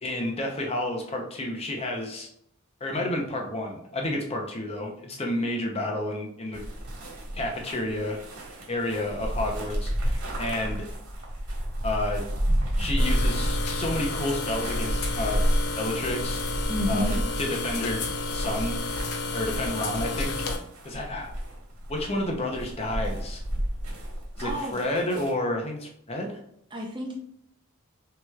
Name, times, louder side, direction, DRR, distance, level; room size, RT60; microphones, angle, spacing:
voice 1, 0.0-2.3 2.8-6.6 7.3-8.2 8.7-10.9 11.8-12.3 12.8-15.4 15.7-16.4 16.9-18.8 19.3-20.6 20.8-21.3 21.9-23.4 24.4-26.4, left 1 dB, 25° left, 1 dB, 0.7 m, -30 dB
sound 1, 6.5-25.3, equal, 85° right, 1.6 m, -31 dB
sound 2, 13.0-20.6, left 3 dB, 85° left, 0.7 m, -31 dB
voice 2, 16.7-17.2 24.4-24.8 26.7-27.2, left 1 dB, 20° right, 1 dB, 0.5 m, -30 dB
6.0 x 3.0 x 2.3 m, 0.71 s
head